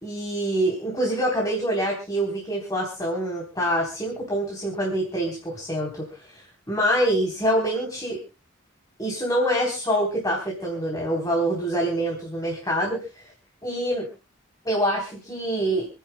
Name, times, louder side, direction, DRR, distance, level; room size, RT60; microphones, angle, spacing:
voice 1, 0.0-8.2 9.0-13.3 13.6-14.1 14.6-15.9, right 1 dB, 20° left, -2 dB, 3.7 m, -25 dB
29.5 x 10.5 x 2.3 m, 0.30 s
head